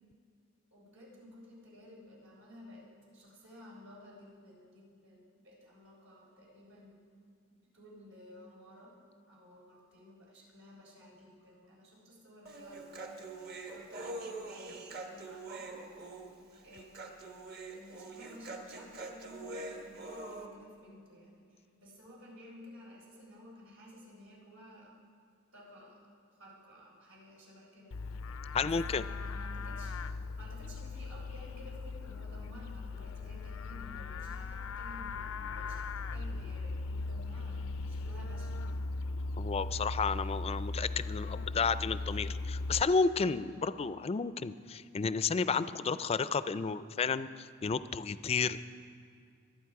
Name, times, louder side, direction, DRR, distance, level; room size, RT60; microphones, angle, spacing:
voice 1, 0.7-7.0 7.5-8.9 9.3-15.7 16.6-17.3 17.7-24.9 25.5-26.0 26.4-28.0 28.6-30.0 30.4-37.6 37.9-38.6, equal, 80° right, -4 dB, 4.6 m, -54 dB
Human voice, 12.5-20.5, right 2 dB, 50° right, 1.3 m, -44 dB
Livestock farm animals working animals, 27.9-42.8, left 3 dB, 90° left, 0.5 m, -38 dB
voice 2, 28.5-29.0 39.4-48.6, left 5 dB, 30° left, 14 dB, 0.4 m, -32 dB
24.0 x 9.0 x 4.7 m, 2.3 s
head